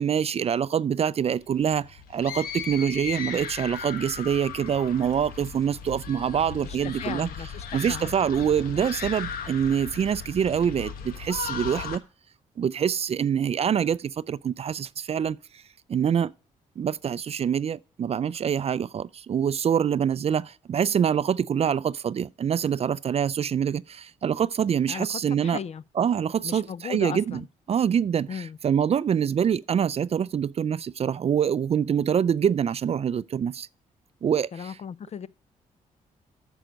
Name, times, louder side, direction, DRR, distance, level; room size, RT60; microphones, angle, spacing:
voice 1, 0.0-7.3 7.7-12.0 12.6-15.4 15.9-16.3 16.8-25.6 26.0-27.4 27.7-33.7 34.2-34.7, right 8 dB, 45° right, 0.4 m, -25 dB
sound 1, 1.4-12.0, left 6 dB, 75° left, 1.1 m, -37 dB
voice 2, 6.6-8.0 24.9-25.8 26.4-27.5 28.3-28.6 34.5-35.3, left 7 dB, 45° left, 0.5 m, -36 dB
9.0 x 6.2 x 5.1 m
supercardioid pair, 65°, 15 cm